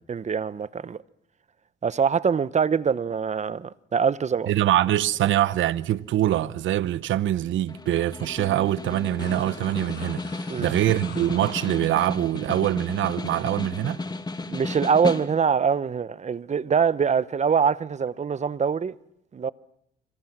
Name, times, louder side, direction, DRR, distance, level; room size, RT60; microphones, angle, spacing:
voice 1, 0.1-1.0 1.8-4.5 5.2-5.3 10.5-10.7 14.5-19.0 19.3-19.5, right 6 dB, 35° right, 0.8 m, -24 dB
voice 2, 4.5-10.2 10.6-14.0, right 13 dB, 75° right, 0.8 m, -24 dB
Snare drum, 7.7-15.6, left 3 dB, 20° left, 1.8 m, -34 dB
sound 1, 9.2-12.2 12.5-12.6, left 5 dB, 60° left, 6.6 m, -44 dB
26.0 x 26.0 x 6.0 m
cardioid pair, 90°, 20 cm